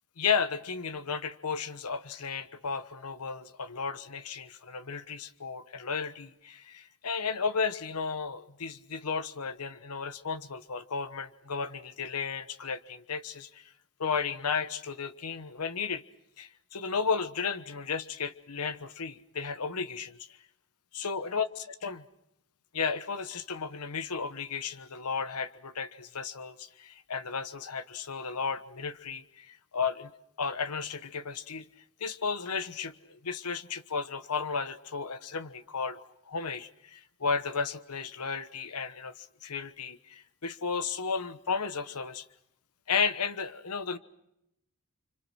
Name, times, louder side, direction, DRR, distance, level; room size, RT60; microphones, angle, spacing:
voice 1, 0.2-13.7 14.0-16.0 16.4-20.2 20.9-22.0 22.7-30.1 30.4-31.7 32.0-42.2 42.9-44.0, left 5 dB, 85° left, 11 dB, 1.1 m, -34 dB
30.0 x 25.5 x 6.3 m, 0.81 s
head